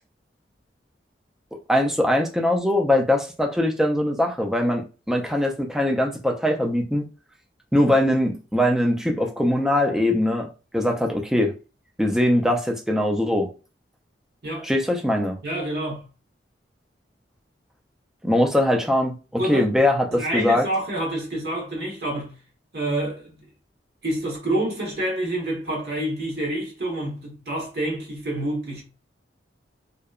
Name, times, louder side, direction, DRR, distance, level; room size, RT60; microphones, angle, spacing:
voice 1, 1.7-7.1 7.7-10.5 10.7-11.5 12.0-13.5 14.6-15.4 18.2-20.6, left 1 dB, 5° right, 0.3 m, -21 dB
voice 2, 15.4-16.0 19.4-19.6 20.1-22.3 22.7-23.4 24.0-28.8, right 1 dB, 60° right, 1.0 m, -27 dB
2.7 x 2.1 x 2.3 m
head